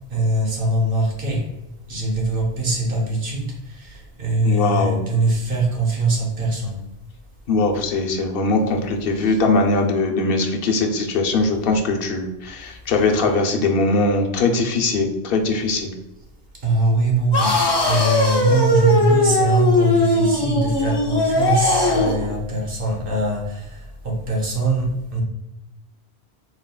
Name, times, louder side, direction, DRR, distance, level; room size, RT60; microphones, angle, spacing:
voice 1, 0.1-1.5 1.9-6.8 9.2-9.4 16.6-25.2, right 2 dB, 55° right, 0 dB, 1.2 m, -22 dB
voice 2, 4.4-5.0 7.5-15.9, left 3 dB, 60° left, 3 dB, 0.8 m, -21 dB
sound 1, 17.3-22.2, left 2 dB, 30° left, 0.5 m, -19 dB
4.3 x 3.7 x 2.3 m, 0.92 s
omnidirectional pair, 1.1 m